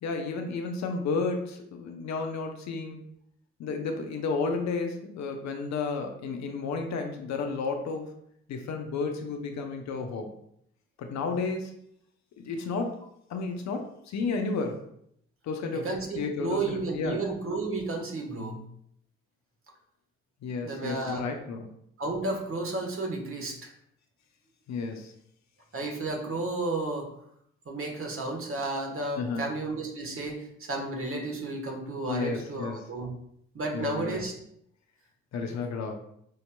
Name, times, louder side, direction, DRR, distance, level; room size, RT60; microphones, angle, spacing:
voice 1, 0.0-3.0 3.6-8.1 8.5-10.3 11.0-11.7 12.4-13.0 13.3-14.8 15.4-15.9 16.2-17.2 20.4-21.7 24.7-25.1 29.2-29.5 32.1-32.8 33.7-34.2 35.3-36.0, left 4 dB, 65° left, 4 dB, 0.7 m, -32 dB
voice 2, 15.7-18.6 20.6-21.2 22.0-23.7 25.7-27.1 27.6-33.1 33.5-34.3 35.5-35.6, right 2 dB, 45° right, 0 dB, 1.3 m, -32 dB
5.3 x 2.8 x 2.2 m, 0.71 s
hypercardioid pair, 40°, 30 cm